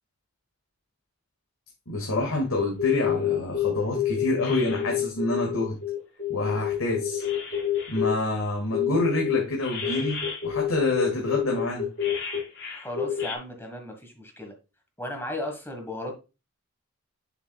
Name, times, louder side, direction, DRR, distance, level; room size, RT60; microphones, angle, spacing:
voice 1, 1.9-5.8 6.3-7.2 7.9-11.9, left 1 dB, 85° left, 1.9 m, -27 dB
sound 1, 2.6-8.2 8.7-13.4, left 9 dB, 55° left, 3.3 m, -28 dB
voice 2, 12.7-14.5 15.0-16.1, left 1 dB, 10° left, 1.3 m, -35 dB
7.2 x 7.1 x 2.3 m
head